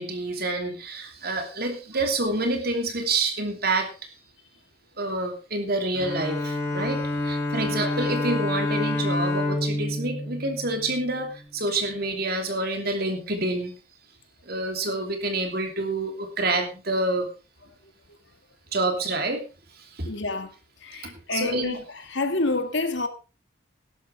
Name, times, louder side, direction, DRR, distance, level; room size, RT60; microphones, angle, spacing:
voice 1, 0.0-4.1 5.0-13.8 14.5-17.3 18.7-19.4 19.7-20.1 20.9-21.8, right 2 dB, 45° right, 2.9 m, -28 dB
Bowed string instrument, 5.9-11.4, left 1 dB, 15° left, 5.0 m, -28 dB
voice 2, 7.6-8.0 20.0-20.5 20.8-21.8 22.1-23.1, left 2 dB, 65° left, 1.9 m, -28 dB
16.0 x 12.5 x 3.3 m
head